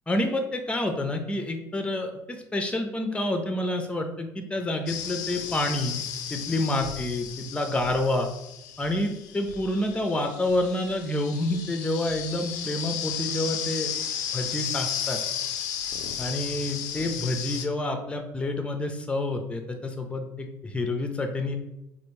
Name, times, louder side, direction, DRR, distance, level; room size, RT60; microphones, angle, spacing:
voice 1, 0.1-6.0 6.3-8.3 8.8-13.9 14.3-15.2 16.2-21.6, left 1 dB, 10° left, 5 dB, 0.5 m, -28 dB
sound 1, 4.9-17.7, left 9 dB, 80° left, 0.4 m, -34 dB
3.3 x 2.5 x 3.1 m, 0.88 s
hypercardioid pair, 65°, 10 cm